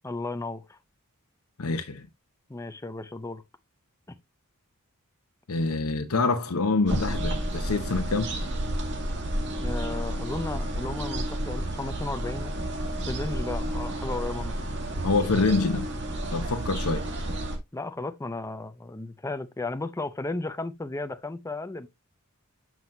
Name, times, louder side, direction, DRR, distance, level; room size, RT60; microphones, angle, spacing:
voice 1, 0.0-0.8 2.5-3.4 9.6-12.7 13.1-14.5 17.7-21.9, left 2 dB, 15° left, 0.5 m, -34 dB
voice 2, 1.6-2.1 5.5-8.3 15.0-15.9 16.3-17.1, left 3 dB, 80° left, 0.8 m, -26 dB
sound 1, 6.9-17.6, right 1 dB, 55° right, 1.9 m, -31 dB
7.5 x 6.1 x 2.6 m
head